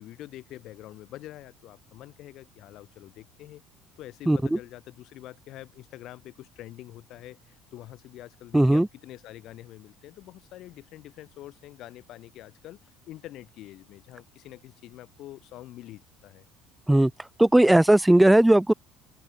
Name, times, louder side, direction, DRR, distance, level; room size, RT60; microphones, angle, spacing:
voice 1, 0.0-3.6 4.0-16.5, left 15 dB, 50° left, 3.6 m, -45 dB
voice 2, 4.3-4.6 8.5-8.9 16.9-18.7, right 1 dB, 5° right, 0.4 m, -18 dB
open air
cardioid pair, 160°, 0 cm